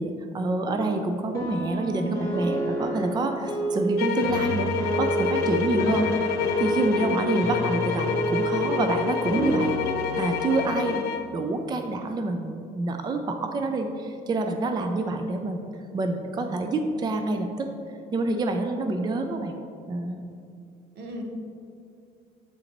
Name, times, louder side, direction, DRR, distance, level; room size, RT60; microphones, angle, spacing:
voice 1, 0.0-9.7 10.1-15.6 15.9-17.7 18.1-19.5 19.9-20.3, right 2 dB, 25° right, 5 dB, 0.4 m, -27 dB
sound 1, 0.7-10.7, right 2 dB, 20° left, 1.0 m, -29 dB
voice 2, 2.0-2.6 20.9-21.2, right 1 dB, 80° right, 1 dB, 0.9 m, -36 dB
sound 2, 4.0-11.3, left 9 dB, 75° left, 0.4 m, -28 dB
8.2 x 3.9 x 3.0 m, 2.4 s
cardioid pair, 110°, 17 cm